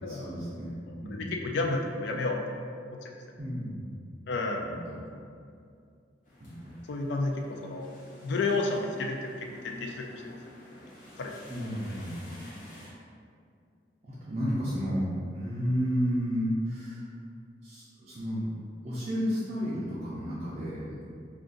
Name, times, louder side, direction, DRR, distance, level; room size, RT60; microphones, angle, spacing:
voice 1, 0.0-1.3 3.4-3.9 4.6-5.1 6.4-6.7 11.5-12.3 14.0-15.0 15.3-17.0 17.6-18.5 18.8-20.9, equal, 40° right, -10 dB, 0.5 m, -32 dB
voice 2, 0.8-2.4 3.0-3.1 4.3-4.7 6.9-7.9 8.2-9.3 9.6-10.4 11.2-11.3, left 3 dB, 65° left, 2 dB, 0.4 m, -31 dB
sound 1, 6.2-12.9, left 1 dB, 45° left, 1.0 m, -49 dB
2.5 x 2.4 x 3.8 m, 2.3 s
head